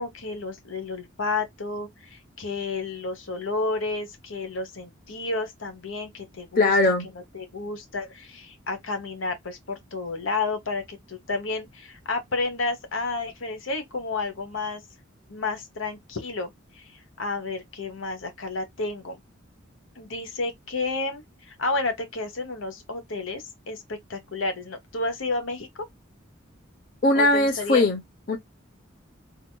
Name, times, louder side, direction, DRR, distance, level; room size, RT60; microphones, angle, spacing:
voice 1, 0.0-14.8 15.3-19.2 20.0-25.9 27.1-27.9, left 3 dB, 70° left, 1.1 m, -31 dB
voice 2, 6.6-7.1 27.0-28.0 28.3-28.4, left 2 dB, 45° left, 0.7 m, -20 dB
4.5 x 2.8 x 2.2 m
head